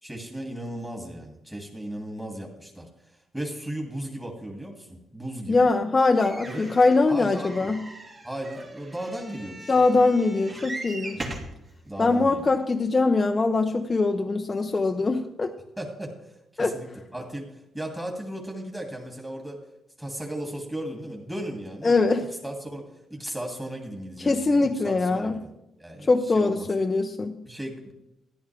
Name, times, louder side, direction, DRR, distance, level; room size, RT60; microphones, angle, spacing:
voice 1, 0.0-2.9 3.3-5.7 6.4-6.7 7.0-7.7 8.2-9.8 11.1-11.3 11.8-12.5 15.8-19.6 20.0-22.8 23.1-25.5 25.8-26.7 27.4-27.9, right 1 dB, 10° right, 2.4 m, -36 dB
voice 2, 5.5-7.8 9.7-11.2 12.0-15.5 16.6-16.8 21.8-22.2 24.2-25.3 26.1-27.3, left 3 dB, 30° left, 0.7 m, -22 dB
sound 1, 6.2-11.6 12.3-12.4 12.6-12.7, right 2 dB, 35° right, 2.5 m, -40 dB
13.5 x 10.5 x 3.4 m
cardioid pair, 90°, 0 cm